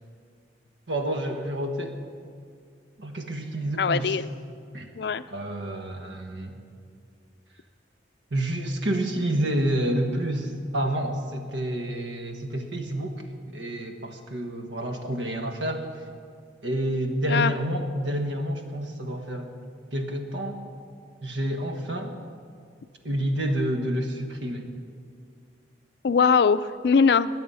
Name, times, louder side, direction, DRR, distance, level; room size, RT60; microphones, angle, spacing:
voice 1, 0.9-1.9 3.0-4.1 4.7-4.9 5.3-6.5 8.3-13.2 13.5-15.9 16.6-19.5 19.9-20.6 21.2-22.1 23.0-24.7, right 1 dB, 90° right, 5 dB, 1.3 m, -29 dB
voice 2, 3.8-4.3 5.0-5.2 17.3-17.5 26.0-27.3, left 5 dB, 65° left, 14 dB, 0.4 m, -21 dB
20.5 x 7.8 x 5.5 m, 2.2 s
head